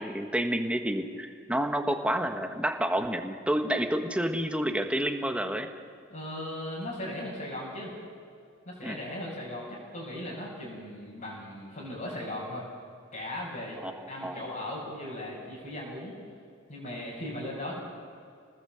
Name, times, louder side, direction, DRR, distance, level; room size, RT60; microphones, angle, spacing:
voice 1, 0.0-5.7 8.8-9.0 13.8-14.4, right 1 dB, 5° right, 5 dB, 1.6 m, -29 dB
voice 2, 6.1-7.9 8.6-12.6 13.1-13.8 14.1-16.1 16.7-17.8, left 1 dB, 45° left, -8 dB, 6.9 m, -37 dB
28.5 x 19.5 x 7.9 m, 2.4 s
head